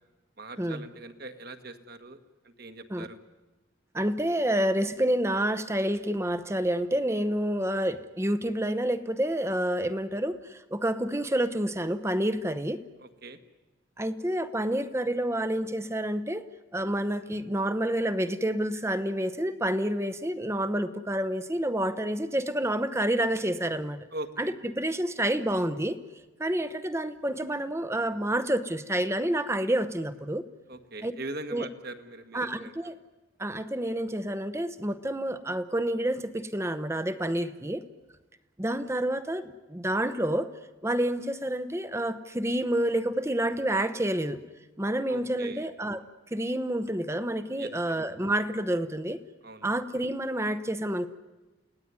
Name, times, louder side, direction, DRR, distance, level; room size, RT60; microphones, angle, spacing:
voice 1, 0.4-2.2 2.4-3.2 13.0-13.4 24.1-24.6 30.7-32.7 45.1-45.7 47.6-47.7 49.4-49.7, right 2 dB, 50° right, 8 dB, 1.7 m, -41 dB
voice 2, 3.9-12.8 14.0-16.5 16.7-24.0 24.4-26.0 26.4-30.4 31.0-31.1 31.5-31.7 32.3-32.9 33.4-37.8 38.6-40.5 40.8-44.4 44.8-46.0 46.3-49.2 49.6-51.1, right 1 dB, 15° right, 12 dB, 0.9 m, -28 dB
29.5 x 18.0 x 9.6 m, 1.1 s
head